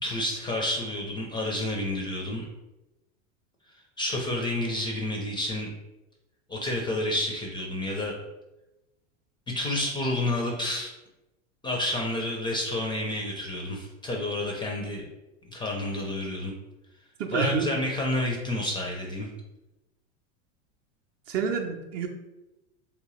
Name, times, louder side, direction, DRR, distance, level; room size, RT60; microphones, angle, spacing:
voice 1, 0.0-2.4 4.0-5.7 6.5-8.2 9.5-10.9 11.6-15.1 15.4-16.5 17.3-19.3, left 1 dB, 15° left, 0 dB, 0.4 m, -30 dB
voice 2, 17.2-17.7 21.3-22.1, right 6 dB, 45° right, 3 dB, 0.5 m, -28 dB
3.2 x 2.8 x 3.0 m, 0.98 s
supercardioid pair, 120°, 36 cm